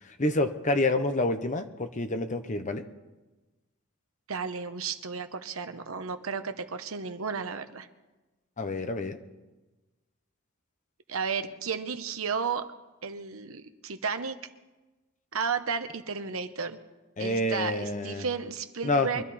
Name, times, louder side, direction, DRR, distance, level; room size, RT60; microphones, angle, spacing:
voice 1, 0.2-2.8 8.6-9.2 17.2-18.2 18.8-19.2, left 2 dB, 35° left, 8 dB, 0.9 m, -28 dB
voice 2, 4.3-7.9 11.1-12.7 13.0-14.4 15.3-16.8 17.2-19.2, right 5 dB, 80° right, 9 dB, 1.0 m, -33 dB
23.5 x 12.5 x 4.3 m, 1.2 s
head